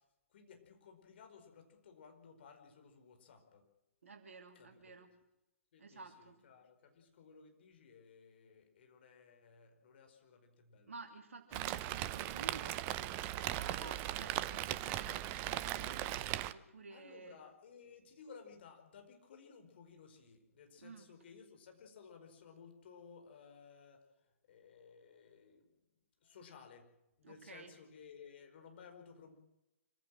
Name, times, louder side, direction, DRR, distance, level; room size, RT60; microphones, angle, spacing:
voice 1, 0.3-3.7 4.6-5.0 5.7-10.9 16.9-24.1 24.5-25.7 26.2-29.4, left 6 dB, 45° left, 5 dB, 5.0 m, -58 dB
voice 2, 4.0-5.1 5.8-6.4 10.9-16.2 16.5-17.4 20.8-21.1 27.2-27.7, right 4 dB, 60° right, 3 dB, 2.9 m, -52 dB
Rain, 11.5-16.5, right 14 dB, 25° right, 0.8 m, -38 dB
26.0 x 16.0 x 7.7 m, 0.92 s
figure-of-eight pair, 125°, 8 cm